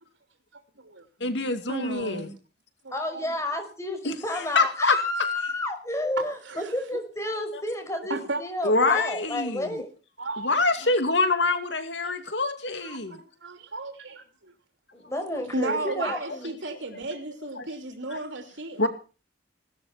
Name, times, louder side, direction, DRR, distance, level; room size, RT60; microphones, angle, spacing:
voice 1, 0.5-1.0 1.7-2.3 2.8-3.2 6.4-6.7 8.1-8.4 8.7-8.9 10.2-10.5 12.0-12.1 12.8-14.5 15.5-18.9, right 2 dB, 85° right, 5 dB, 3.0 m, -34 dB
voice 2, 1.2-2.3 4.0-5.0 7.5-7.6 8.6-9.8 10.4-13.2 17.6-17.7 18.1-18.2 18.8-18.9, left 3 dB, 70° left, 8 dB, 2.5 m, -25 dB
voice 3, 2.9-9.9 14.9-16.5, left 1 dB, 15° left, 6 dB, 5.6 m, -31 dB
17.5 x 13.5 x 5.9 m, 0.35 s
head